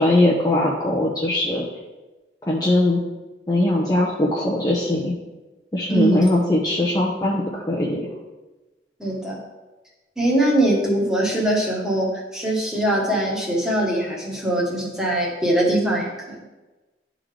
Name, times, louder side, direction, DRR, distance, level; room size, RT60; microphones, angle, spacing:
voice 1, 0.0-1.6 2.4-3.0 3.5-5.1 5.7-8.1, left 1 dB, 25° left, -4 dB, 0.8 m, -20 dB
voice 2, 5.9-6.4 9.0-9.4 10.2-16.4, right 1 dB, 5° right, -4 dB, 1.3 m, -22 dB
11.5 x 3.8 x 3.4 m, 1.1 s
head